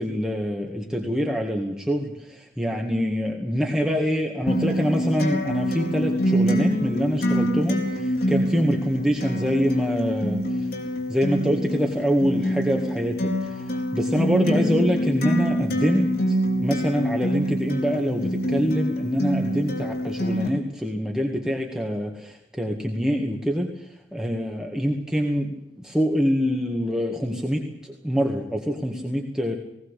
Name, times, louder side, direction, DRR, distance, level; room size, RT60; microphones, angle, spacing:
voice 1, 0.0-10.7 11.1-29.5, equal, 5° right, 0 dB, 2.1 m, -25 dB
Acoustic guitar, 4.5-20.5, equal, 60° left, 4.5 m, -25 dB
20.0 x 17.5 x 8.4 m, 0.88 s
head